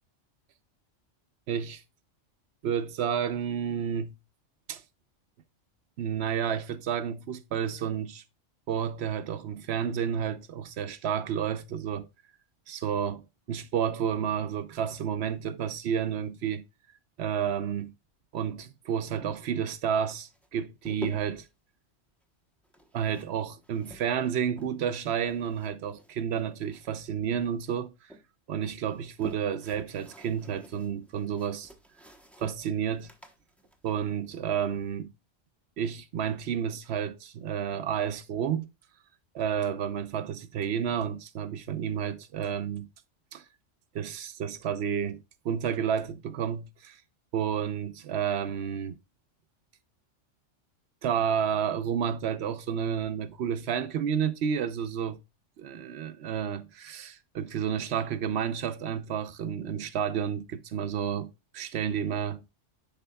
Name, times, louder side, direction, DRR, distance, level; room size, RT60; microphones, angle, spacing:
voice 1, 1.5-1.8 2.6-4.1 4.7-4.8 6.0-8.2 8.7-12.1 12.7-16.6 17.2-17.9 18.3-21.5 22.9-27.9 28.5-31.7 32.4-33.1 33.8-35.1 35.8-38.7 39.3-42.9 43.3-43.4 43.9-47.0 47.3-49.0 51.0-55.2 55.6-62.4, right 8 dB, 65° right, 0.8 m, -31 dB
sound 1, 20.2-21.5 22.6-25.0 25.3-27.1 27.4-28.2 28.8-34.8, equal, ahead, 0.7 m, -48 dB
10.5 x 4.3 x 2.2 m
omnidirectional pair, 1.2 m